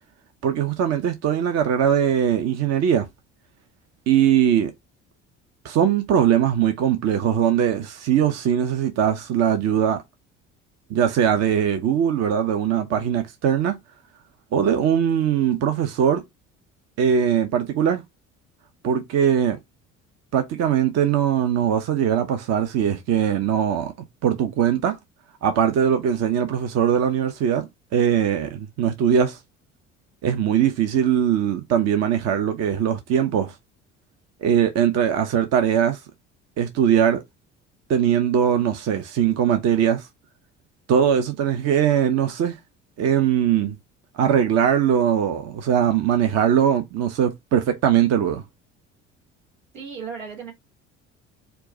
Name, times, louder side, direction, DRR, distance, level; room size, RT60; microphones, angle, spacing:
voice 1, 0.4-3.1 4.1-4.7 5.6-10.0 10.9-13.8 14.5-16.2 17.0-18.0 18.8-19.6 20.3-23.9 24.2-24.9 25.4-29.4 30.2-33.5 34.4-36.0 36.6-37.2 37.9-40.1 40.9-42.5 43.0-43.8 44.2-48.4, right 9 dB, 40° right, 0.8 m, -21 dB
voice 2, 49.7-50.5, right 6 dB, 80° right, 1.5 m, -35 dB
4.5 x 2.3 x 3.9 m
figure-of-eight pair, 55°, 38 cm